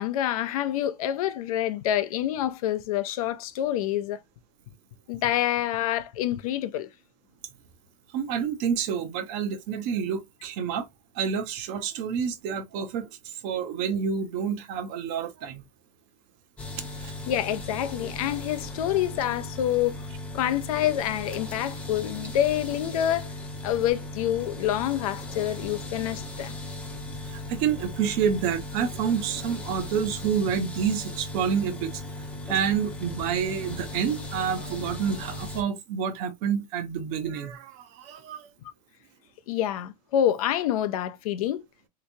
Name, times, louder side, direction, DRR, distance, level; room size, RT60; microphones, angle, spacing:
voice 1, 0.0-4.2 5.1-6.9 17.3-20.0 20.3-23.3 23.6-26.6 39.5-41.6, left 11 dB, 60° left, 0.5 m, -27 dB
voice 2, 8.1-10.9 11.1-15.6 17.0-17.1 27.2-32.0 32.5-38.5, right 7 dB, 40° right, 0.7 m, -28 dB
sound 1, 16.6-35.6, left 2 dB, 5° left, 0.7 m, -37 dB
3.4 x 2.9 x 2.6 m
supercardioid pair, 155°, 21 cm